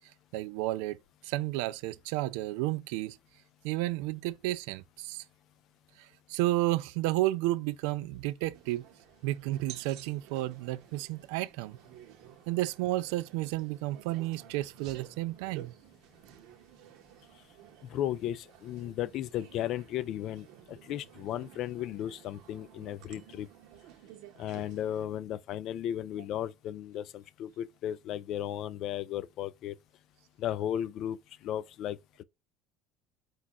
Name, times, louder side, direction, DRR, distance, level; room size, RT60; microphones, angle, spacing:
voice 1, 0.3-1.0 1.2-3.2 3.6-5.2 6.0-8.8 9.2-11.8 12.5-15.7, right 17 dB, 90° right, 0.4 m, -32 dB
sound 1, 8.5-25.1, right 11 dB, 60° right, 0.7 m, -53 dB
voice 2, 17.9-23.5 24.4-29.8 30.4-32.2, left 11 dB, 45° left, 0.3 m, -35 dB
4.7 x 2.4 x 4.0 m
cardioid pair, 170°, 0 cm